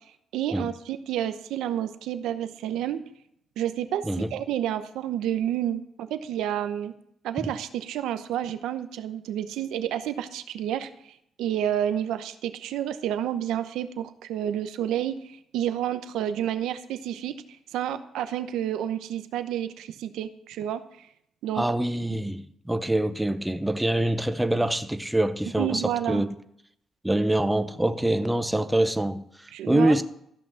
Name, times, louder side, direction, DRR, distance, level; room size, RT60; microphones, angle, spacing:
voice 1, 0.3-3.0 3.6-6.9 7.2-10.9 11.4-17.3 17.7-21.1 21.4-21.6 25.6-26.3 29.5-30.0, right 11 dB, 85° right, 0.8 m, -30 dB
voice 2, 21.5-26.3 27.0-30.0, right 1 dB, 5° right, 0.8 m, -25 dB
14.0 x 6.1 x 7.1 m
cardioid pair, 90°, 0 cm